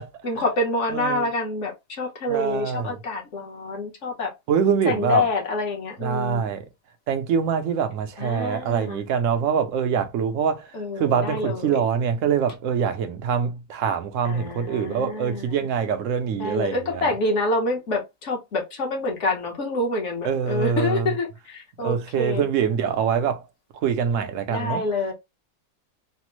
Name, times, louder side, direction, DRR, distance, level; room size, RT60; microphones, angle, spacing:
voice 1, 0.2-4.3 4.9-6.4 8.2-9.0 10.7-11.8 14.2-15.7 16.4-22.5 24.5-25.1, left 2 dB, 50° left, 1.1 m, -27 dB
voice 2, 0.9-1.3 2.3-3.0 4.5-5.2 6.0-6.6 7.1-10.7 11.0-17.1 20.2-21.1 21.8-23.4 23.7-24.8, right 7 dB, 65° right, 0.8 m, -24 dB
3.3 x 2.0 x 3.0 m
omnidirectional pair, 1.7 m